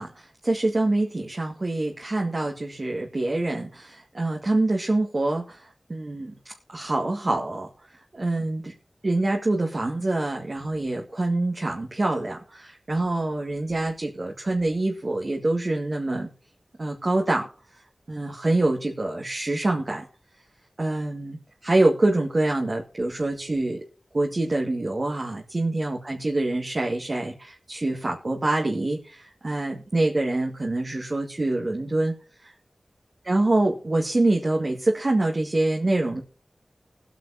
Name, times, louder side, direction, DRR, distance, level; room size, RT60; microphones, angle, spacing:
voice 1, 0.0-5.6 5.9-6.3 6.7-7.7 8.1-8.7 9.0-16.3 16.8-17.5 18.1-20.0 20.8-23.8 24.1-32.1 32.4-32.5 33.3-36.2, right 2 dB, 55° right, 0 dB, 2.0 m, -25 dB
22.0 x 9.2 x 2.8 m, 0.40 s
cardioid pair, 45°, 0 cm